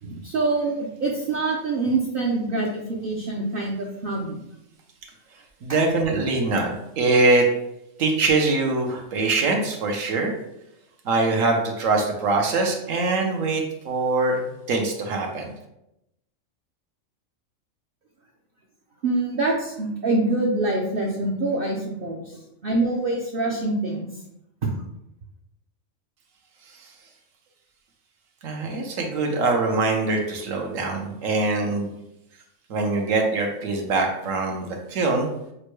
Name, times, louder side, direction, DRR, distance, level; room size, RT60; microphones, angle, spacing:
voice 1, 0.0-4.4 5.7-5.8 19.0-24.1 24.6-24.7, right 2 dB, 55° right, -2 dB, 0.7 m, -25 dB
voice 2, 5.6-7.5 8.0-10.3 11.0-14.4 14.7-15.5 26.8-26.9 28.4-31.9 32.7-35.3, right 3 dB, 75° right, 2 dB, 1.2 m, -23 dB
6.5 x 2.2 x 3.1 m, 0.84 s
omnidirectional pair, 1.4 m